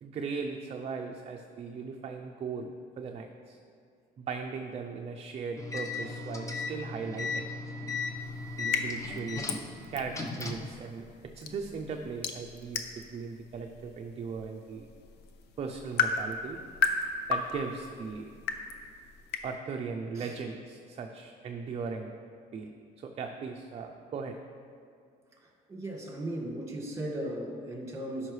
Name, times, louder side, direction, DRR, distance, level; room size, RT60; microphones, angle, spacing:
voice 1, 0.0-3.6 4.2-7.5 8.6-9.5 9.9-11.0 11.3-14.9 15.6-16.6 17.3-18.3 19.4-22.1 22.5-24.4, right 5 dB, 40° right, 3 dB, 0.5 m, -38 dB
sound 1, 5.6-10.7, left 3 dB, 20° left, 0.9 m, -36 dB
sound 2, 8.2-19.5, left 5 dB, 80° left, 0.7 m, -36 dB
voice 2, 25.7-28.3, right 1 dB, 20° right, -1 dB, 1.8 m, -36 dB
12.5 x 5.6 x 3.2 m, 2.3 s
cardioid pair, 110°, 17 cm